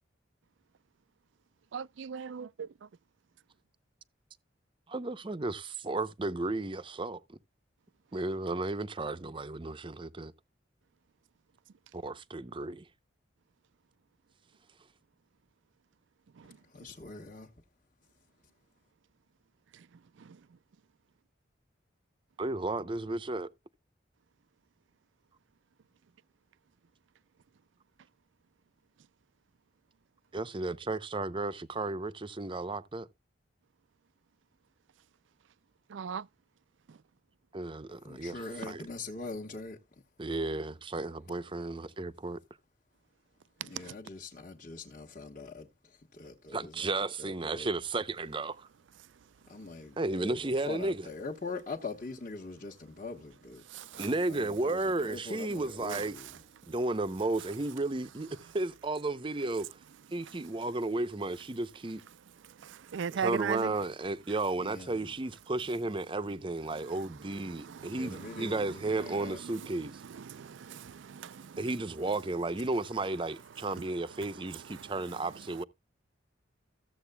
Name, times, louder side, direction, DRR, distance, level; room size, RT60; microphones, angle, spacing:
voice 1, 1.7-2.7 16.4-16.6 19.7-19.9 20.2-20.4 35.9-36.3 36.9-37.0 43.6-43.9 53.7-54.1 55.9-56.0 56.6-56.7 60.1-60.4 62.4-63.7 66.7-71.7 73.5-75.6, right 7 dB, 75° right, 0.4 m, -41 dB
voice 2, 4.9-7.4 8.1-10.3 11.9-12.8 22.4-23.5 30.3-33.1 37.5-38.3 38.7-38.8 40.2-42.4 46.5-48.7 50.0-51.0 54.0-56.1 56.7-58.3 58.5-59.8 60.1-62.0 63.2-69.9 71.6-75.6, right 2 dB, 25° right, 0.6 m, -33 dB
voice 3, 16.4-17.6 37.9-40.0 43.6-47.7 49.4-56.4 64.6-65.1 67.8-69.6 72.5-72.6, left 3 dB, 40° left, 1.3 m, -43 dB
15.0 x 7.6 x 2.2 m
head